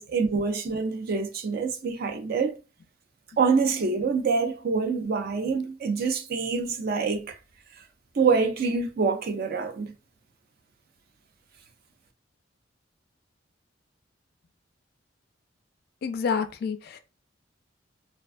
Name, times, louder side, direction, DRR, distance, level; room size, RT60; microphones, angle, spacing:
voice 1, 0.0-2.5 3.4-7.4 8.2-9.9, right 5 dB, 50° right, 0.4 m, -26 dB
voice 2, 16.0-17.0, left 6 dB, 55° left, 0.3 m, -28 dB
2.4 x 2.2 x 2.4 m
head